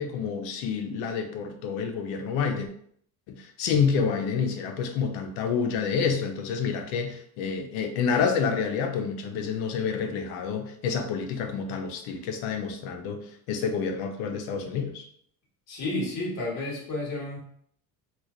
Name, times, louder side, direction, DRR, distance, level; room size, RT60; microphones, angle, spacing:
voice 1, 0.0-2.7 3.3-15.0, left 6 dB, 90° left, 5 dB, 0.7 m, -28 dB
voice 2, 15.7-17.4, left 2 dB, 50° left, -3 dB, 1.4 m, -31 dB
3.0 x 2.4 x 3.7 m, 0.64 s
cardioid pair, 160°, 36 cm